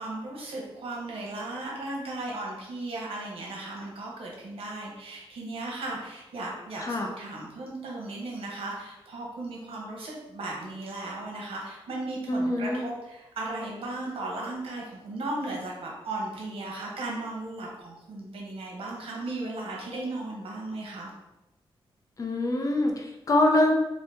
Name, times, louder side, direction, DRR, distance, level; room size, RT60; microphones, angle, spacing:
voice 1, 0.0-21.1, right 2 dB, 80° right, -2 dB, 0.9 m, -36 dB
voice 2, 6.8-7.1 12.3-12.9 22.2-23.7, left 1 dB, 35° left, 1 dB, 0.5 m, -24 dB
2.8 x 2.5 x 3.4 m, 0.97 s
wide cardioid pair, 110°, 10 cm